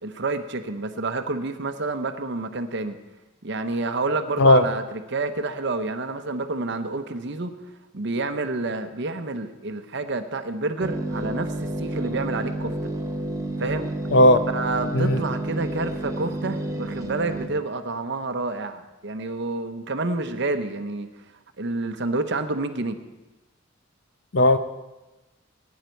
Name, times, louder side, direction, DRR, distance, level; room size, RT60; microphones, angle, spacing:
voice 1, 0.0-3.0 3.4-7.5 7.9-12.9 13.6-13.9 14.5-21.1 21.6-23.0, right 3 dB, 60° right, 8 dB, 0.9 m, -29 dB
voice 2, 4.4-4.6 14.1-14.4 14.9-15.2 24.3-24.6, left 1 dB, 60° left, 10 dB, 0.7 m, -15 dB
sound 1, 10.8-17.5, right 1 dB, 15° right, 1.0 m, -30 dB
17.5 x 9.5 x 4.5 m, 1.1 s
head